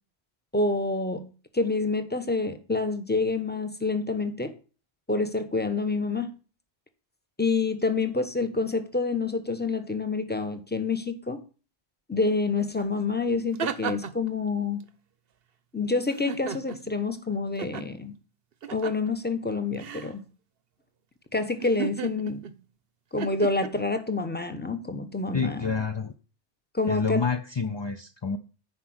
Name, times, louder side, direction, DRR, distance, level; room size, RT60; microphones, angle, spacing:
voice 1, 0.5-4.5 5.1-6.3 7.4-11.4 12.1-14.8 15.7-18.2 18.7-20.2 21.3-22.4 23.1-25.6 26.7-27.2, left 3 dB, 10° left, 9 dB, 1.0 m, -27 dB
sound 1, 12.8-12.9 13.3-14.3 16.1-16.9 17.6-17.9 18.6-19.1 19.8-20.1 21.6-22.6 23.2-23.7, right 8 dB, 60° right, 1.0 m, -34 dB
voice 2, 25.3-26.1 26.9-28.4, left 5 dB, 35° left, 7 dB, 0.5 m, -28 dB
10.0 x 5.2 x 7.8 m, 0.36 s
omnidirectional pair, 1.2 m